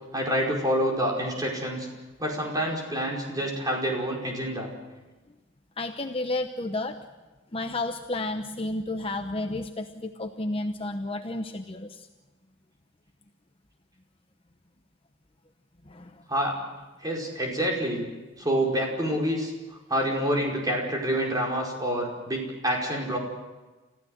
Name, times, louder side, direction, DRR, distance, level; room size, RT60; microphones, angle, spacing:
voice 1, 0.1-1.9 2.2-4.7 16.3-16.6 17.0-18.1 18.4-23.2, equal, 20° right, -1 dB, 5.1 m, -27 dB
voice 2, 5.8-7.0 7.5-12.1 15.9-16.2, left 2 dB, 25° left, 6 dB, 0.9 m, -32 dB
30.0 x 15.0 x 7.9 m, 1.2 s
head